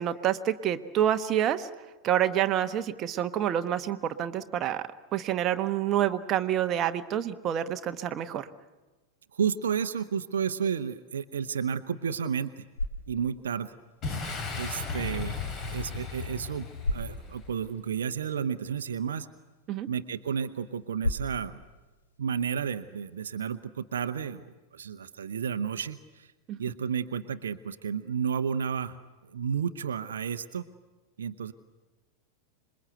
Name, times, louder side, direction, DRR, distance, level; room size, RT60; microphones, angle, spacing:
voice 1, 0.0-1.7 2.0-8.5 19.7-19.9 26.5-26.6, right 10 dB, 30° right, 8 dB, 1.1 m, -28 dB
voice 2, 9.3-12.6 13.1-13.7 14.6-19.3 19.9-21.6 22.2-26.3 26.6-29.0 29.3-30.6 31.2-31.5, right 7 dB, 65° right, 11 dB, 0.8 m, -32 dB
sound 1, 12.4-23.5, left 1 dB, 75° left, 2.2 m, -40 dB
Boom, 14.0-17.6, left 4 dB, 30° left, 3.7 m, -35 dB
26.5 x 21.5 x 8.0 m, 1.2 s
figure-of-eight pair, 90°, 0 cm